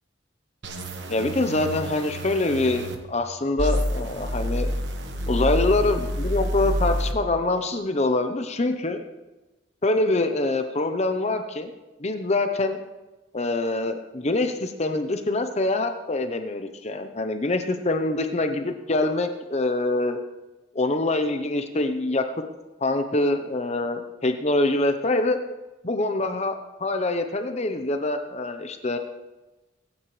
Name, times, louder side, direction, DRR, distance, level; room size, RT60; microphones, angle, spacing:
sound 1, 0.6-2.9 3.6-7.1, equal, 70° right, 1.3 m, -28 dB
voice 1, 1.1-4.7 5.3-9.0 9.8-11.7 12.0-12.8 13.3-20.2 20.7-22.2 22.8-25.4 25.8-29.0, left 2 dB, 35° left, 7 dB, 0.8 m, -25 dB
23.5 x 9.1 x 3.3 m, 1.1 s
head